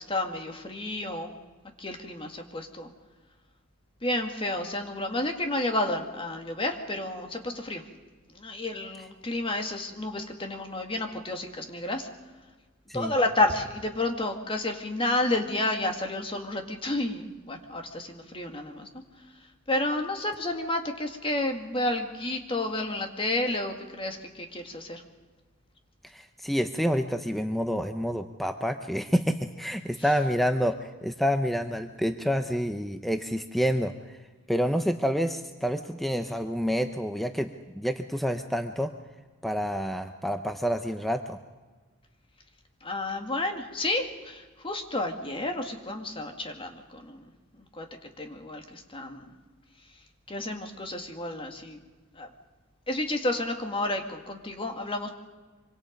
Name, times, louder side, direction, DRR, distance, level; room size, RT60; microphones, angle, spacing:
voice 1, 0.1-1.3 1.8-2.9 4.0-7.8 8.4-12.1 12.9-18.9 19.7-25.0 42.8-47.3 47.8-47.9 48.2-49.3 50.3-51.8 52.2-52.3 52.9-55.1, left 2 dB, 25° left, 4 dB, 2.2 m, -31 dB
voice 2, 26.0-34.2 34.5-38.9 39.4-41.4, equal, ahead, 7 dB, 0.7 m, -28 dB
25.5 x 25.0 x 5.3 m, 1.3 s
head